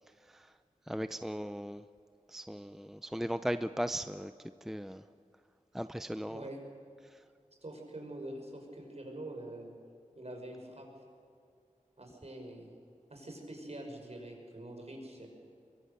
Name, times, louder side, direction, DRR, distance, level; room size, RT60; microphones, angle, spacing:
voice 1, 0.2-0.5 0.9-1.9 2.3-4.3 4.6-5.0 5.7-6.5 7.0-7.2, equal, 5° right, 11 dB, 0.6 m, -37 dB
voice 2, 6.3-6.6 7.6-9.7 10.2-10.9 12.0-12.7 13.1-15.3, right 1 dB, 50° right, 2 dB, 5.8 m, -45 dB
24.0 x 23.0 x 6.9 m, 2.4 s
wide cardioid pair, 65°, 14 cm